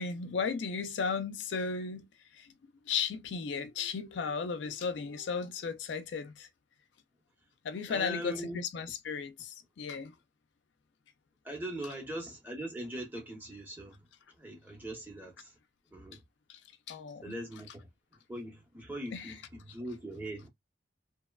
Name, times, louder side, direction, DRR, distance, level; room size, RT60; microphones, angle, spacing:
voice 1, 0.0-2.0 2.3-2.5 2.9-6.5 7.6-10.1 16.5-16.6 16.9-17.4 19.1-19.3, left 5 dB, 70° left, 0.4 m, -35 dB
voice 2, 7.9-8.6 11.4-14.0 14.4-15.5 15.9-16.2 17.2-17.7 18.3-20.5, right 1 dB, 10° right, 0.8 m, -40 dB
2.9 x 2.1 x 2.3 m
head